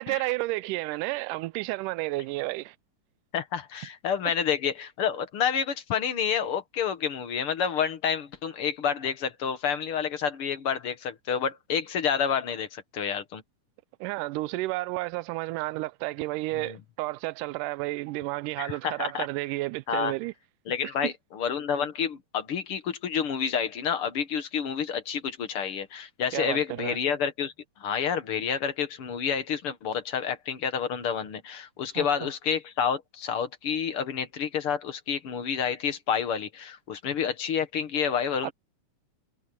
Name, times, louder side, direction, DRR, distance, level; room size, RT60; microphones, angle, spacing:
voice 1, 0.0-2.8 4.3-4.4 14.0-20.3 21.0-21.1 26.3-27.0 32.0-32.3 38.4-38.5, right 20 dB, 85° right, 2.1 m, -31 dB
voice 2, 3.3-13.4 16.5-16.8 18.6-19.3 19.9-20.1 20.7-38.5, left 7 dB, 55° left, 1.9 m, -29 dB
omnidirectional pair, 3.7 m